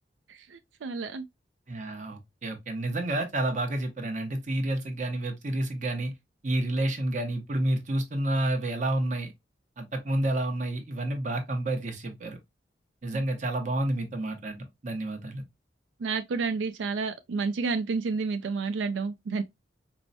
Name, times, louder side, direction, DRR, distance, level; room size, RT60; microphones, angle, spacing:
voice 1, 0.5-1.2 13.1-13.2 16.0-19.4, right 4 dB, 85° right, 0.4 m, -30 dB
voice 2, 1.7-6.1 6.4-9.3 9.8-12.4 13.0-15.4, right 1 dB, 40° right, 0.8 m, -29 dB
4.6 x 2.1 x 2.6 m
head